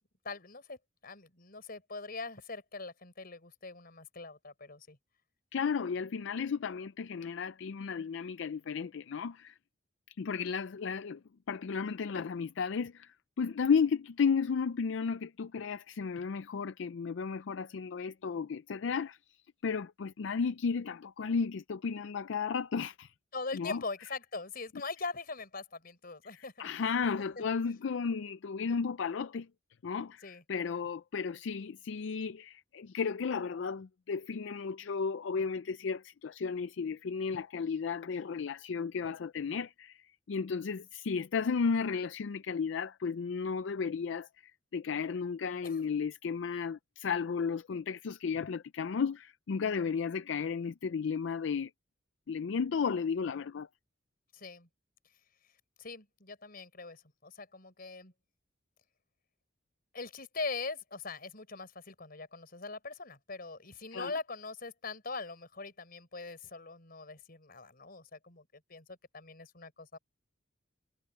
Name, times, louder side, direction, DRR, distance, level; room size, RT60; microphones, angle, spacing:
voice 1, 0.2-5.0 23.3-26.9 27.4-27.5 30.2-30.4 45.6-46.0 54.3-54.7 55.8-58.1 59.9-70.0, left 3 dB, 50° left, 4.7 m, -42 dB
voice 2, 5.5-9.5 10.1-11.2 11.5-13.1 13.4-19.4 19.6-23.1 23.5-23.8 26.6-29.5 29.8-30.2 30.5-40.0 40.3-44.3 44.7-51.7 52.3-53.7 63.9-64.1, left 5 dB, 65° left, 0.4 m, -33 dB
head